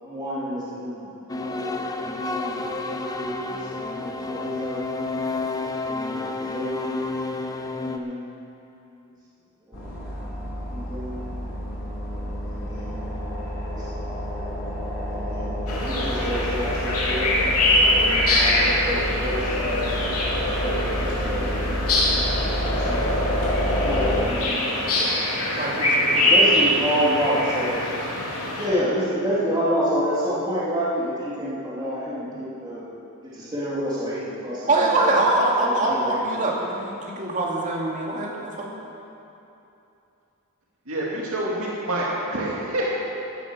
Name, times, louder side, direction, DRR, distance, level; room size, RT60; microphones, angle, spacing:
voice 1, 0.0-5.2 5.8-7.0 7.8-8.3 9.7-10.1 10.4-11.5 12.5-13.9 14.3-14.5 15.1-17.4 17.9-20.0 20.4-23.5 23.8-25.7 26.1-27.8 28.6-32.8 33.2-35.0 35.6-36.7, equal, 20° right, -10 dB, 2.6 m, -30 dB
sound 1, 1.3-8.0, left 3 dB, 15° left, 0.7 m, -30 dB
sound 2, 9.7-24.2, equal, 60° left, 2.9 m, -28 dB
sound 3, 15.7-28.7, left 1 dB, 85° left, 2.9 m, -23 dB
voice 2, 25.6-26.3 34.7-38.7, right 2 dB, 35° right, -3 dB, 2.4 m, -23 dB
voice 3, 40.9-42.9, right 1 dB, 70° right, -5 dB, 2.3 m, -27 dB
15.5 x 10.0 x 6.2 m, 2.8 s
head